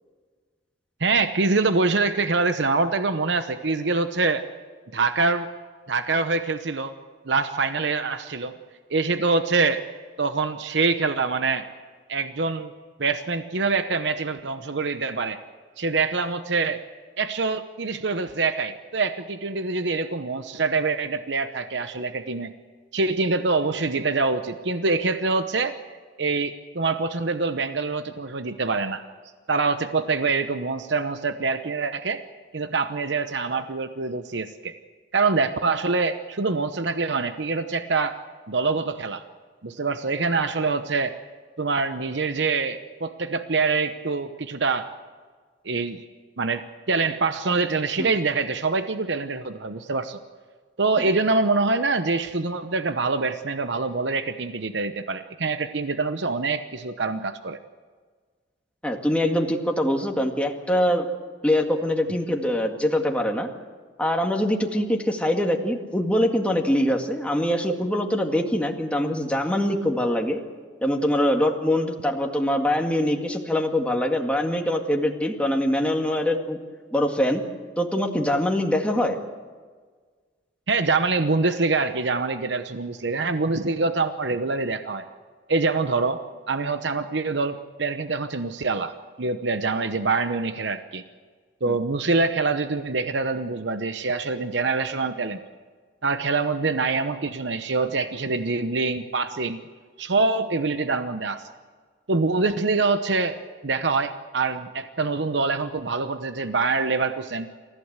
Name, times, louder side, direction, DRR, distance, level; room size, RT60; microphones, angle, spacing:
voice 1, 1.0-4.4 4.9-5.5 5.9-6.9 7.2-8.5 8.9-9.8 10.2-11.7 12.1-12.7 13.0-15.4 15.8-16.8 17.2-22.5 22.9-25.8 26.2-29.0 29.5-32.2 32.5-34.7 35.1-38.2 38.5-39.2 39.6-41.2 41.6-44.9 45.6-46.0 46.4-50.2 50.8-57.6 80.7-85.1 85.5-86.2 86.5-88.9 89.2-91.0 91.6-95.4 96.0-99.6 100.0-101.4 102.1-107.5, right 3 dB, 70° right, 9 dB, 0.9 m, -25 dB
voice 2, 58.8-61.1 61.4-63.5 64.0-70.4 70.8-76.6 76.9-77.4 77.8-79.2 91.7-91.8, left 1 dB, 5° left, 2 dB, 1.9 m, -23 dB
28.0 x 15.0 x 8.1 m, 1.5 s
head